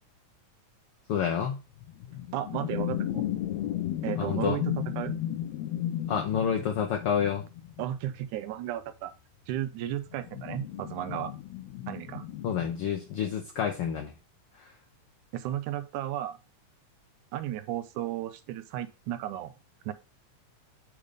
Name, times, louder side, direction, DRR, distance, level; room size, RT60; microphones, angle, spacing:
voice 1, 1.1-1.6 4.2-4.6 6.1-7.4 12.4-14.1 14.6-14.7, left 8 dB, 75° left, 1.3 m, -28 dB
sound 1, 1.8-8.2 10.1-12.8, left 12 dB, 90° left, 1.5 m, -34 dB
voice 2, 2.3-3.2 4.0-5.2 7.8-9.1 9.5-11.3 11.9-12.2 15.3-16.4 17.3-19.5 19.9-20.0, right 12 dB, 80° right, 2.0 m, -34 dB
9.1 x 3.4 x 5.2 m
omnidirectional pair, 3.7 m